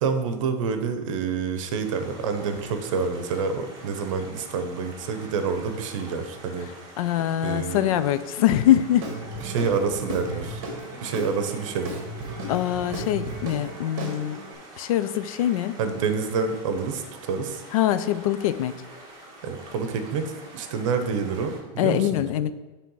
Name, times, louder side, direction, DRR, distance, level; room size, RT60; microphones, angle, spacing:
voice 1, 0.0-6.7 7.4-7.9 9.4-12.0 15.8-17.6 19.4-22.2, right 5 dB, 65° right, 8 dB, 0.9 m, -28 dB
sound 1, 1.8-21.6, right 2 dB, 20° right, 1.5 m, -46 dB
voice 2, 7.0-9.1 12.5-14.4 14.8-15.8 17.7-18.8 21.8-22.5, left 12 dB, 80° left, 14 dB, 0.5 m, -23 dB
Guitar / Drum, 9.0-14.5, right 1 dB, 45° right, 1.3 m, -35 dB
7.4 x 3.5 x 5.5 m, 1.2 s
supercardioid pair, 175°, 18 cm